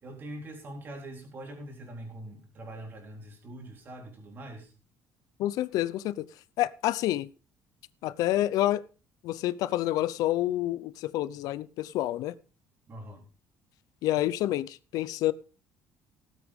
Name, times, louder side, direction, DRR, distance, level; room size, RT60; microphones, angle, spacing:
voice 1, 0.0-4.7 12.9-13.2, right 1 dB, 30° right, 3.8 m, -43 dB
voice 2, 5.4-6.3 6.6-7.3 8.0-8.8 9.2-12.3 14.0-15.3, left 14 dB, 70° left, 0.6 m, -28 dB
18.0 x 8.2 x 3.6 m
cardioid pair, 170°, 6 cm